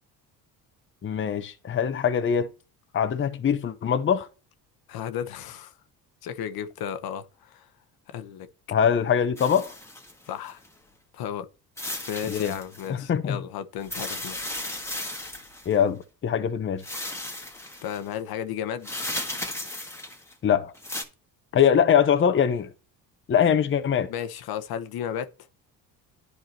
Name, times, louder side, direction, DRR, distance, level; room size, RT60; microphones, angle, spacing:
voice 1, 1.0-2.5 2.9-4.3 8.7-9.7 12.3-12.5 12.9-13.4 15.7-16.8 20.4-20.7 21.5-22.7 23.3-24.1, left 8 dB, 30° left, 0.8 m, -23 dB
voice 2, 4.9-5.7 6.2-7.7 8.1-8.5 10.3-10.6 11.1-11.5 12.1-14.4 17.8-18.9 24.1-25.3, left 9 dB, 65° left, 1.0 m, -33 dB
sound 1, 9.4-10.7 11.8-12.9 13.8-15.7 16.8-18.0 18.8-20.3 20.7-21.0, left 1 dB, 5° left, 1.6 m, -35 dB
10.5 x 4.8 x 2.9 m
cardioid pair, 90°, 39 cm